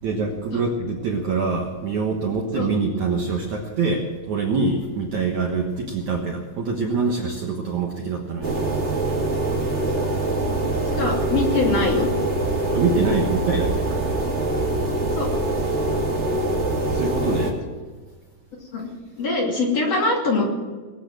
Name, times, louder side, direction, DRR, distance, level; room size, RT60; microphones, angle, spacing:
voice 1, 0.0-8.7 12.7-13.9 16.9-17.6, right 4 dB, 90° right, 1 dB, 1.6 m, -25 dB
sound 1, 8.4-17.5, right 2 dB, 40° right, 0.9 m, -24 dB
voice 2, 10.9-12.1 15.1-15.3 18.7-18.9 19.2-20.5, left 3 dB, 40° left, -1 dB, 3.0 m, -23 dB
20.5 x 8.5 x 7.6 m, 1.4 s
omnidirectional pair, 5.5 m